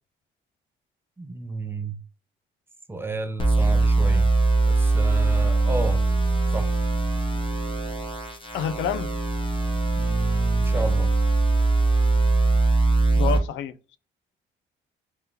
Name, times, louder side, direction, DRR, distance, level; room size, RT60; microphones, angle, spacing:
voice 1, 1.2-2.0 2.9-4.3 4.7-6.0 6.5-6.8 9.9-11.1, right 3 dB, 10° right, 0.5 m, -32 dB
sound 1, 3.4-13.4, right 3 dB, 25° left, 1.0 m, -21 dB
voice 2, 8.5-9.1 13.1-13.7, left 8 dB, 75° left, 0.4 m, -28 dB
3.5 x 2.8 x 3.5 m
cardioid pair, 90°, 20 cm